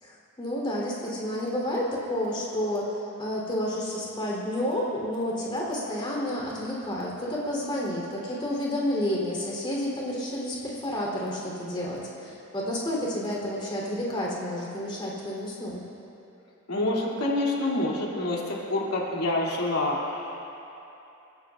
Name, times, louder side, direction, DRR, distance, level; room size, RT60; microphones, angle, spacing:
voice 1, 0.0-2.9 3.2-15.8, left 1 dB, 25° left, -4 dB, 3.4 m, -30 dB
voice 2, 16.7-20.4, left 2 dB, 90° left, -4 dB, 2.7 m, -27 dB
28.5 x 16.5 x 2.5 m, 2.9 s
head